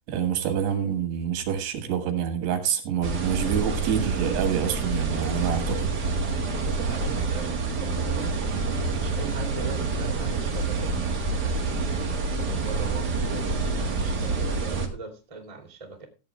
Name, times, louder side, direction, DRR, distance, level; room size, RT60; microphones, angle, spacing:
voice 1, 0.1-5.9, right 8 dB, 90° right, 7 dB, 4.2 m, -27 dB
sound 1, 3.0-14.9, right 4 dB, 45° right, 1.3 m, -27 dB
voice 2, 6.6-16.1, right 4 dB, 10° right, 4 dB, 2.0 m, -40 dB
15.0 x 8.9 x 3.3 m, 0.29 s
omnidirectional pair, 4.7 m